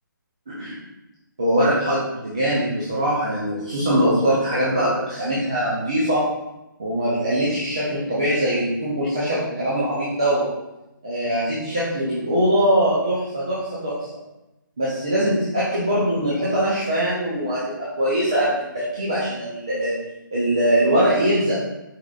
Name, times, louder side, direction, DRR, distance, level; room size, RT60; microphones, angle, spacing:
voice 1, 1.4-6.3 6.8-10.5 11.0-14.0 14.8-20.0 20.3-21.7, equal, 15° right, -10 dB, 0.4 m, -22 dB
4.7 x 3.9 x 2.3 m, 0.97 s
hypercardioid pair, 180°, 11 cm